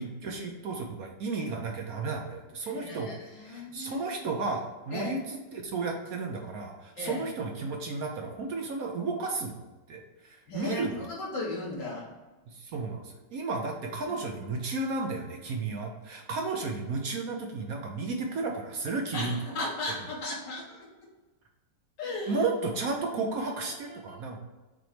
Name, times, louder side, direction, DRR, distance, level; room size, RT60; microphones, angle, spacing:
voice 1, 0.0-3.1 3.5-9.6 9.9-11.0 12.5-19.4 22.3-24.4, right 3 dB, 60° right, 2 dB, 1.1 m, -33 dB
voice 2, 2.7-4.0 4.9-5.2 7.0-7.2 10.5-12.1 14.0-14.1 19.1-20.9 22.0-22.4 23.8-24.2, left 2 dB, 75° left, -4 dB, 1.9 m, -36 dB
6.1 x 3.1 x 5.0 m, 1.2 s
omnidirectional pair, 1.9 m